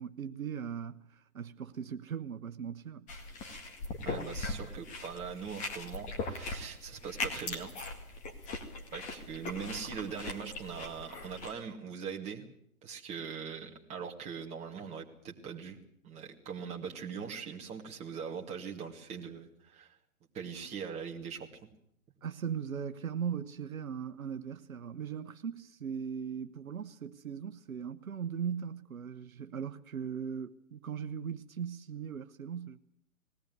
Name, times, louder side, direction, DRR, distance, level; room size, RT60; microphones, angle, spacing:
voice 1, 0.0-3.1 22.2-32.8, right 7 dB, 70° right, 1.2 m, -39 dB
sound 1, 3.1-11.5, left 3 dB, 15° left, 2.1 m, -40 dB
voice 2, 4.0-7.7 8.9-12.5 12.8-15.8 16.0-19.9 20.3-21.7, right 6 dB, 15° right, 2.3 m, -41 dB
20.5 x 17.5 x 9.5 m
hypercardioid pair, 145°, 43 cm